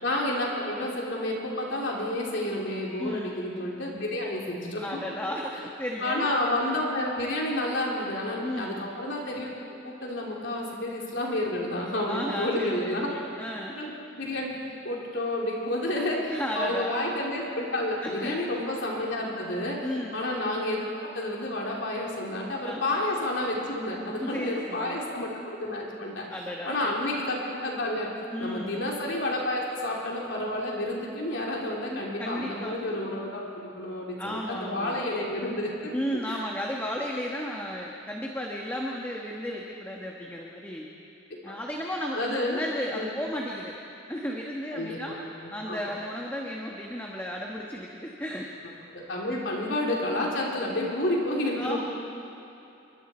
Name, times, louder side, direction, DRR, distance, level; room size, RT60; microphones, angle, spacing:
voice 1, 0.0-5.0 6.0-9.5 9.8-13.1 13.7-19.9 20.1-26.3 26.6-28.1 28.4-35.9 36.3-36.4 41.5-41.6 42.1-42.6 42.9-43.1 44.7-45.8 48.9-51.8, left 1 dB, 60° left, -3 dB, 3.4 m, -30 dB
voice 2, 3.0-3.4 4.8-6.3 8.4-8.8 12.1-13.8 16.3-17.0 18.0-18.4 19.8-20.2 22.5-23.0 24.1-25.1 26.3-26.9 28.3-28.8 31.9-32.8 34.2-35.1 35.9-40.9 41.4-43.8 44.1-45.1 45.5-48.5 49.3-49.6 51.6-51.8, equal, 10° left, -1 dB, 1.3 m, -34 dB
28.0 x 24.5 x 4.5 m, 2.8 s
head